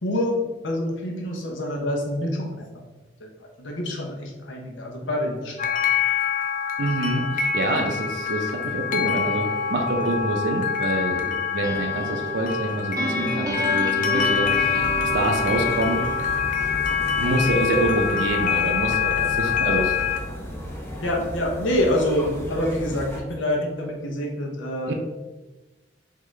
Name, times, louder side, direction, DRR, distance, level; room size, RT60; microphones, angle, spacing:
voice 1, 0.0-0.3 0.6-2.5 3.6-5.7 7.7-7.8 21.0-24.9, left 1 dB, 85° left, 0 dB, 0.9 m, -26 dB
sound 1, 5.6-20.2, left 7 dB, 45° left, 0.4 m, -25 dB
voice 2, 6.8-14.8 15.1-16.0 17.2-20.1 24.9-25.0, right 1 dB, 70° right, 2 dB, 0.5 m, -26 dB
sound 2, 9.2-16.4, right 2 dB, 20° right, 0.5 m, -33 dB
sound 3, 14.4-23.2, equal, 15° left, 0.7 m, -34 dB
3.8 x 3.6 x 3.2 m, 1.2 s
head